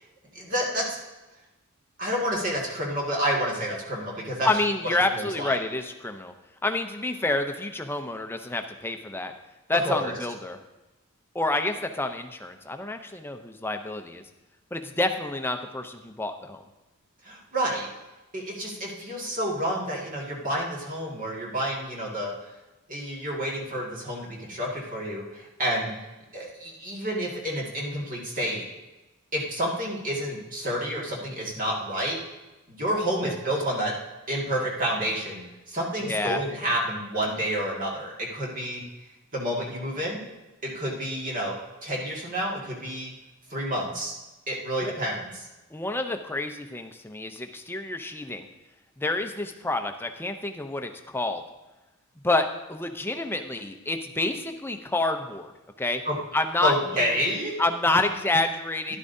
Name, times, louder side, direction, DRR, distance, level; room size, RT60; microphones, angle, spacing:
voice 1, 0.3-1.0 2.0-4.5 5.1-5.6 9.8-10.1 17.2-17.9 18.3-22.3 22.9-25.9 26.3-28.6 29.3-32.2 32.7-33.9 34.3-38.8 39.3-40.2 40.6-41.5 41.8-43.1 43.5-44.2 44.5-45.5 56.1-56.2 56.6-57.5 58.9-59.0, equal, 40° right, -2 dB, 1.9 m, -29 dB
voice 2, 4.4-6.3 6.6-9.3 9.7-10.6 11.3-14.2 14.7-16.6 33.2-33.3 36.0-36.4 44.8-44.9 45.7-48.5 49.0-51.4 52.2-55.5 55.8-56.0 56.3-57.2 57.6-59.0, left 2 dB, 10° left, 5 dB, 0.5 m, -28 dB
12.0 x 11.0 x 2.7 m, 1.1 s
head